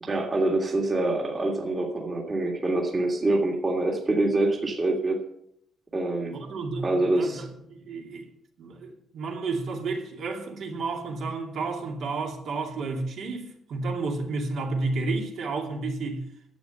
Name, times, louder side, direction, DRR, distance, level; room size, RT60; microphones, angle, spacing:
voice 1, 0.0-5.2 5.9-6.4 6.8-7.4, right 2 dB, 25° right, 1.9 m, -25 dB
voice 2, 6.3-8.3 8.6-16.2, right 3 dB, 60° right, 2.5 m, -31 dB
11.0 x 8.3 x 6.9 m
cardioid pair, 170°, 0 cm